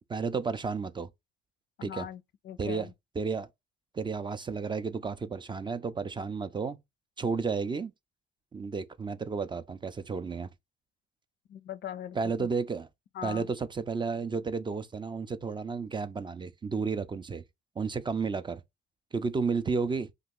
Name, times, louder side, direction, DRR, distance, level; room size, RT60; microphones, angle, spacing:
voice 1, 0.1-1.1 1.8-2.1 2.6-2.9 3.2-3.5 3.9-6.8 7.2-7.9 8.5-10.5 12.1-12.9 13.2-17.4 17.8-18.6 19.1-20.1, right 5 dB, 25° right, 0.3 m, -32 dB
voice 2, 1.8-2.9 11.5-12.5 13.1-13.5, left 10 dB, 60° left, 0.4 m, -40 dB
2.7 x 2.4 x 3.6 m
cardioid pair, 90°, 20 cm